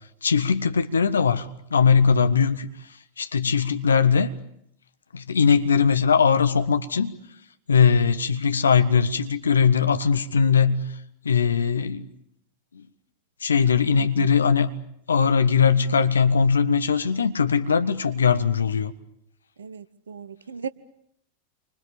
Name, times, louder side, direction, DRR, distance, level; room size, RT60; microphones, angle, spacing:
voice 1, 0.2-2.9 3.2-4.3 5.1-7.1 7.7-10.8 11.2-12.1 13.4-14.7 15.1-18.9, left 6 dB, 70° left, 10 dB, 1.5 m, -20 dB
voice 2, 19.6-20.7, right 7 dB, 70° right, 14 dB, 1.0 m, -36 dB
29.5 x 25.5 x 7.2 m, 0.74 s
figure-of-eight pair, 90°, 0 cm